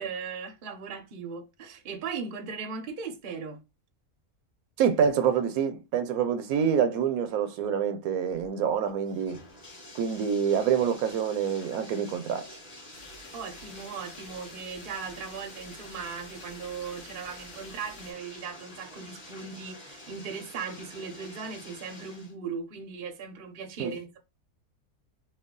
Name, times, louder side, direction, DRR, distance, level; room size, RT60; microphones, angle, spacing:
voice 1, 0.0-3.6 13.3-24.2, right 5 dB, 50° right, 0.7 m, -38 dB
voice 2, 4.8-9.4 9.9-12.6 23.8-23.9, right 7 dB, 75° right, 1.0 m, -26 dB
Bathtub (filling or washing), 8.3-22.3, left 1 dB, 35° left, 1.6 m, -48 dB
sound 1, 12.9-18.1, left 2 dB, 65° left, 1.5 m, -50 dB
3.2 x 2.3 x 3.6 m
omnidirectional pair, 1.6 m